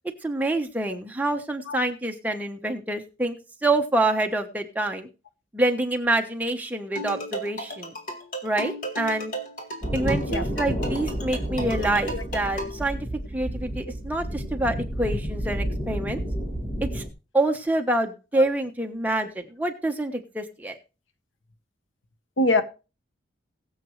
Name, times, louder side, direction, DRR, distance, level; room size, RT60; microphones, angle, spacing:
voice 1, 0.2-3.4 3.6-5.1 5.5-7.9 8.4-9.3 9.9-13.0 13.3-16.2 16.8-17.0 17.3-20.8, right 2 dB, 10° right, 4 dB, 1.1 m, -26 dB
voice 2, 1.7-1.8 10.3-10.4 12.1-12.2 18.4-18.5 22.4-22.6, left 2 dB, 80° left, 10 dB, 1.2 m, -23 dB
sound 1, 6.9-12.8, equal, 45° left, 2.2 m, -35 dB
sound 2, 9.8-17.1, equal, 30° left, 2.2 m, -30 dB
20.5 x 7.6 x 3.2 m, 0.32 s
head